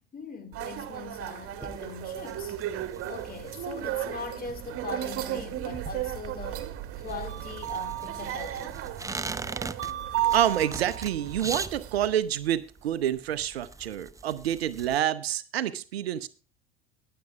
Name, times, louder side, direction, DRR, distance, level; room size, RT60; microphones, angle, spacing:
voice 1, 0.1-2.6 3.1-8.8, left 4 dB, 30° left, 2.4 m, -41 dB
sound 1, 0.5-12.1, right 12 dB, 45° right, 1.8 m, -34 dB
sound 2, 1.6-15.0, right 3 dB, 10° right, 0.6 m, -41 dB
voice 2, 10.3-16.3, right 11 dB, 75° right, 0.8 m, -28 dB
22.0 x 7.9 x 2.3 m
figure-of-eight pair, 65°, 31 cm